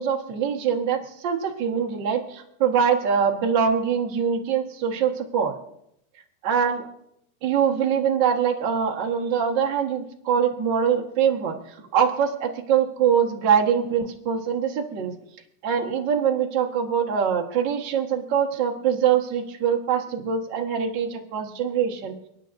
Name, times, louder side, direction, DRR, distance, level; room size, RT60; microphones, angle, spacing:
voice 1, 0.0-5.5 6.4-6.9 7.4-15.1 15.6-22.1, right 7 dB, 50° right, 0 dB, 1.4 m, -23 dB
30.0 x 10.0 x 2.6 m, 0.78 s
omnidirectional pair, 3.9 m